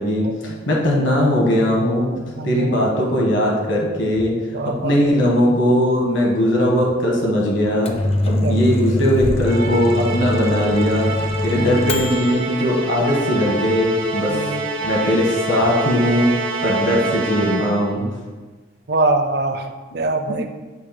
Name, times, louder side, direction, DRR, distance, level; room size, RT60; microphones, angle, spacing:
voice 1, 0.0-2.1 2.4-4.6 4.8-7.9 8.2-11.1 11.4-14.4 14.8-16.3 16.6-18.0, equal, 70° left, -2 dB, 1.4 m, -19 dB
voice 2, 2.4-2.8 4.5-5.0 8.4-8.6 11.5-11.9 14.3-14.6 18.9-19.7 19.9-20.5, right 2 dB, 55° right, 6 dB, 0.6 m, -23 dB
Microwave oven, 7.6-12.4, left 1 dB, 30° left, 0.5 m, -23 dB
Musical instrument, 9.5-18.0, right 2 dB, 80° right, 1.1 m, -26 dB
7.9 x 2.8 x 5.8 m, 1.3 s
head